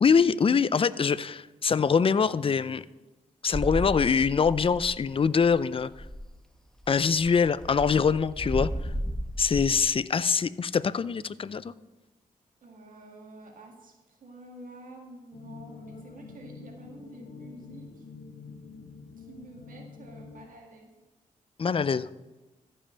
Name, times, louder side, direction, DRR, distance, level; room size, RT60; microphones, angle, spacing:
voice 1, 0.0-2.8 3.4-5.9 6.9-8.7 9.4-11.7 21.6-22.1, left 6 dB, 40° left, 17 dB, 0.5 m, -24 dB
sound 1, 3.5-5.2 5.4-5.5 5.8-6.3 6.8-9.8, equal, 5° left, 1.0 m, -34 dB
voice 2, 8.5-8.9 12.6-18.1 19.2-20.9, right 2 dB, 70° right, 1 dB, 2.0 m, -49 dB
sound 2, 15.3-20.5, left 4 dB, 85° left, 0.9 m, -46 dB
14.0 x 5.6 x 5.1 m, 1.1 s
cardioid pair, 65°, 14 cm